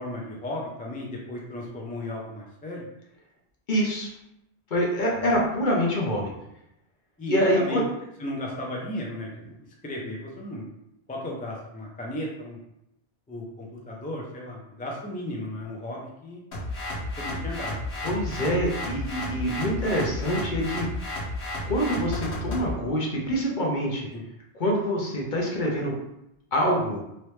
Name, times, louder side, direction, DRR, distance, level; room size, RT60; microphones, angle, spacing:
voice 1, 0.0-2.9 7.2-7.8 8.2-9.3 9.8-10.6 11.1-12.6 13.3-16.4 17.2-17.8 24.1-24.2, left 1 dB, 15° left, -2 dB, 0.3 m, -35 dB
voice 2, 3.7-4.1 4.7-6.3 7.3-7.8 18.0-20.9 21.7-24.1 24.5-25.9 26.5-27.0, equal, 50° left, -2 dB, 0.9 m, -25 dB
sound 1, 16.5-22.7, left 1 dB, 75° left, 1.3 m, -32 dB
3.1 x 3.0 x 3.1 m, 0.83 s
omnidirectional pair, 1.1 m